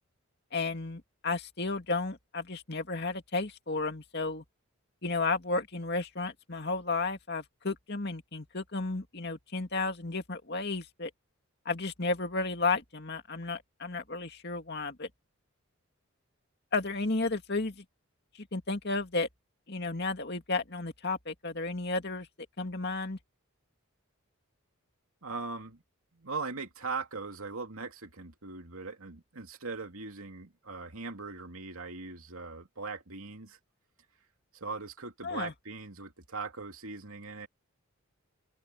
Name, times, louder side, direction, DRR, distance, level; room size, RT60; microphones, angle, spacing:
voice 1, 0.5-4.4 5.0-11.1 11.7-15.1 16.7-17.8 18.4-19.3 19.7-22.3 22.6-23.2 35.2-35.5, left 3 dB, 50° left, 2.4 m, -33 dB
voice 2, 25.2-25.8 26.1-33.6 34.5-37.5, right 4 dB, 75° right, 2.6 m, -40 dB
open air
head